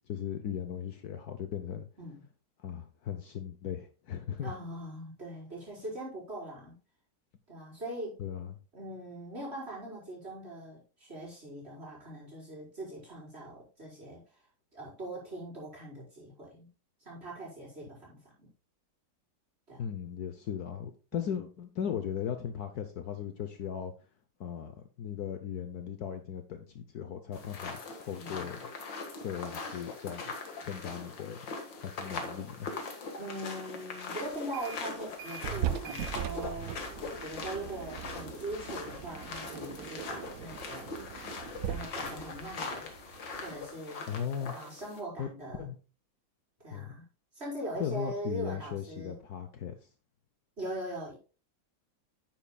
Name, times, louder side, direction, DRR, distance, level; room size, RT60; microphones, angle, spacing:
voice 1, 0.1-1.8 2.6-4.6 8.2-8.6 19.8-23.9 24.4-28.6 29.2-30.2 30.6-31.5 31.8-32.7 44.1-44.5 45.2-45.3 45.6-45.8 46.7-46.9 47.8-49.8, left 8 dB, 65° left, 8 dB, 1.2 m, -37 dB
voice 2, 4.4-6.8 7.5-8.2 8.7-14.4 14.7-16.7 17.0-18.5 19.7-19.8 21.1-21.3 28.2-28.5 30.9-31.0 33.2-36.8 37.2-40.9 41.6-42.9 43.4-44.0 44.5-45.7 46.6-47.1 47.3-49.2 50.6-51.2, right 1 dB, 35° right, -5 dB, 5.0 m, -41 dB
sound 1, 27.3-45.0, left 4 dB, 80° left, 2.3 m, -41 dB
sound 2, 34.4-34.9 35.2-43.6, right 10 dB, 65° right, 0.9 m, -40 dB
10.0 x 9.2 x 2.3 m, 0.34 s
omnidirectional pair, 2.0 m